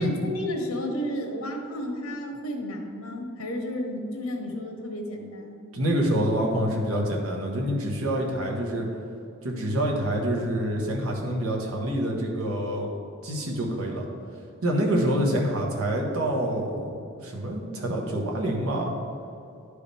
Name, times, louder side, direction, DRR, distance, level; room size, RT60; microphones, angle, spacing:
voice 1, 0.0-5.6, equal, 80° left, 2 dB, 1.2 m, -32 dB
voice 2, 5.7-8.9 9.4-12.9 13.2-14.1 14.6-19.0, right 1 dB, 85° right, -1 dB, 1.4 m, -26 dB
11.5 x 4.9 x 3.4 m, 2.6 s
head